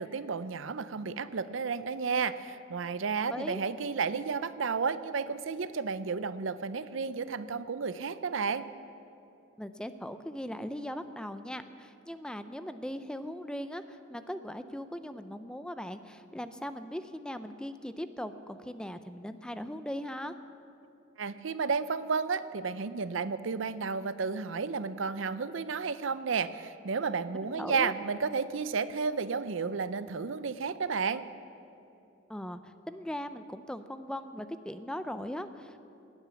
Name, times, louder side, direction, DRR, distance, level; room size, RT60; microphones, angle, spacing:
voice 1, 0.0-8.6 21.2-31.2, right 5 dB, 70° right, 14 dB, 0.6 m, -32 dB
voice 2, 3.3-3.6 9.6-20.3 27.4-27.9 32.3-35.8, equal, 5° left, 10 dB, 0.5 m, -39 dB
19.0 x 9.1 x 7.0 m, 2.7 s
head